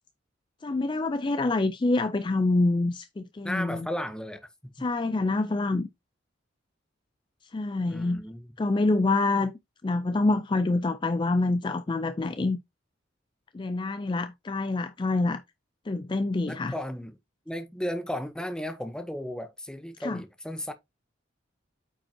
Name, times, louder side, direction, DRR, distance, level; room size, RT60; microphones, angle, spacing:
voice 1, 0.6-3.9 4.8-5.9 7.4-8.2 8.6-9.5 9.8-12.6 13.5-15.4 15.9-16.7 20.0-20.2, left 2 dB, 25° left, 0.3 m, -26 dB
voice 2, 3.4-4.9 7.9-8.5 16.5-17.1 17.5-20.7, equal, 5° left, 0.7 m, -35 dB
8.7 x 5.2 x 2.7 m
head